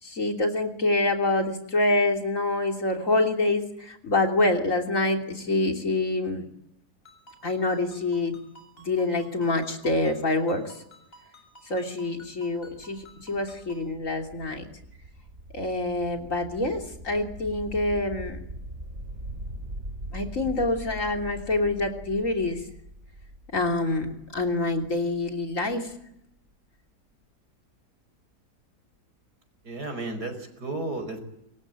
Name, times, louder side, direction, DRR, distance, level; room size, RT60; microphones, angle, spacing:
voice 1, 0.0-6.4 7.4-8.4 8.8-10.7 11.7-14.7 15.5-18.4 20.1-22.6 23.5-25.9, left 2 dB, 50° left, 4 dB, 3.5 m, -26 dB
Ringtone, 7.1-13.9, equal, 35° left, 7.8 m, -54 dB
sound 1, 12.2-25.9, right 1 dB, 45° right, 4.3 m, -42 dB
voice 2, 29.6-31.2, right 2 dB, 75° right, 8 dB, 5.9 m, -33 dB
26.0 x 23.0 x 9.1 m, 0.78 s
omnidirectional pair, 1.7 m